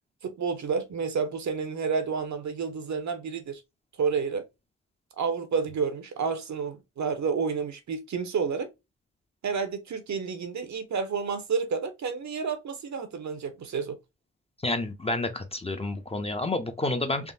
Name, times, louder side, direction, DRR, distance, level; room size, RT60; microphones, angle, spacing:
voice 1, 0.2-3.6 4.0-4.4 5.2-8.7 9.4-14.0, right 5 dB, 65° right, 0.7 m, -30 dB
voice 2, 14.6-17.3, left 2 dB, 20° left, 0.5 m, -29 dB
3.5 x 2.1 x 2.4 m
wide cardioid pair, 100°, 30 cm